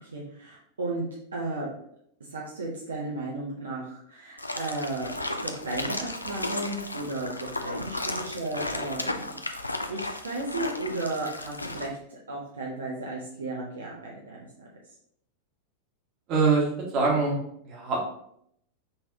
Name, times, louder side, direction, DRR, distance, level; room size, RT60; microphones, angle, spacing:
voice 1, 0.0-1.1 1.3-1.7 2.2-5.1 5.4-14.7, right 2 dB, 70° right, -4 dB, 0.9 m, -34 dB
sound 1, 4.4-11.9, left 2 dB, 85° left, 0.4 m, -34 dB
voice 2, 16.3-16.6 16.9-17.4 17.6-18.0, right 4 dB, 40° right, -2 dB, 1.6 m, -23 dB
5.5 x 3.4 x 2.8 m, 0.70 s
figure-of-eight pair, 90°, 0 cm